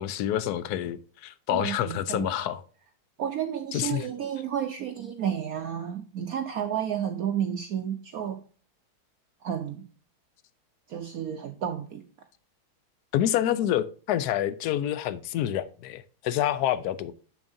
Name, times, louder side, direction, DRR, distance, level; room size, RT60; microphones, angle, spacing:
voice 1, 0.0-2.6 3.7-4.0 13.1-17.1, left 11 dB, 75° left, 0.8 m, -27 dB
voice 2, 1.5-2.2 3.2-8.4 9.4-9.8 10.9-12.0, right 9 dB, 70° right, 0.8 m, -31 dB
7.8 x 7.1 x 2.6 m
omnidirectional pair, 2.2 m